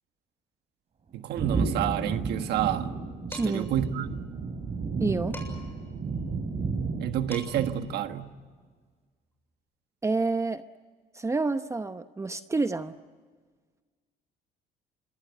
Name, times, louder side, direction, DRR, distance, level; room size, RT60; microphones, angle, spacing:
voice 1, 1.1-2.9 3.3-4.2 7.0-8.3, right 11 dB, 75° right, 8 dB, 1.5 m, -29 dB
sound 1, 1.3-8.1, right 4 dB, 40° right, 4.0 m, -32 dB
Dishes pots and pans, 3.3-3.7 5.3-5.8 7.0-7.1 7.3-7.8, left 2 dB, 10° left, 7.4 m, -43 dB
voice 2, 3.4-3.7 5.0-5.4 10.0-10.6 11.1-13.0, right 3 dB, 15° right, 10 dB, 0.8 m, -28 dB
26.0 x 23.5 x 7.9 m, 1.5 s
cardioid pair, 110°, 17 cm